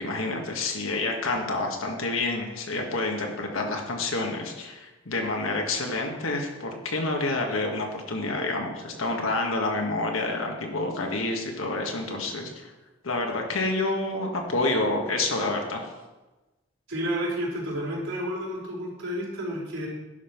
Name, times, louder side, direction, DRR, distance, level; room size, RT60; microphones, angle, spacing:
voice 1, 0.0-12.7 13.0-15.8, left 2 dB, 80° left, 2 dB, 1.6 m, -28 dB
voice 2, 16.9-19.9, equal, 75° right, -5 dB, 3.8 m, -31 dB
10.5 x 5.5 x 5.9 m, 1.1 s
head